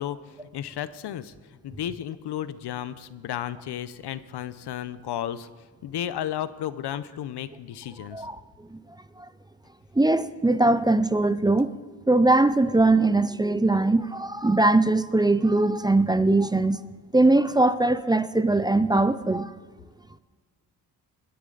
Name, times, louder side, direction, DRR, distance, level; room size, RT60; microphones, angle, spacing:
voice 1, 0.0-1.3 1.6-5.5 5.8-8.3, left 11 dB, 70° left, 0.8 m, -33 dB
voice 2, 10.0-11.7 12.1-16.8 17.1-19.5, right 2 dB, 10° right, 0.5 m, -21 dB
21.5 x 10.0 x 3.9 m
cardioid pair, 75°, 42 cm